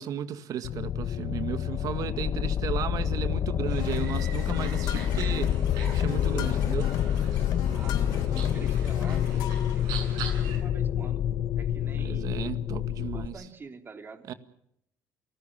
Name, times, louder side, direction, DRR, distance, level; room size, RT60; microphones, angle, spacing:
voice 1, 0.0-5.5 5.8-6.9 11.9-13.4 14.3-14.4, right 9 dB, 65° right, 1.9 m, -35 dB
sound 1, 0.6-13.3, left 10 dB, 65° left, 1.2 m, -28 dB
sound 2, 3.7-10.6, right 7 dB, 90° right, 7.9 m, -43 dB
sound 3, 3.8-9.8, left 11 dB, 90° left, 1.7 m, -38 dB
voice 2, 7.7-12.5 13.1-14.3, right 4 dB, 35° right, 3.2 m, -47 dB
29.0 x 19.0 x 7.4 m
cardioid pair, 105°, 7 cm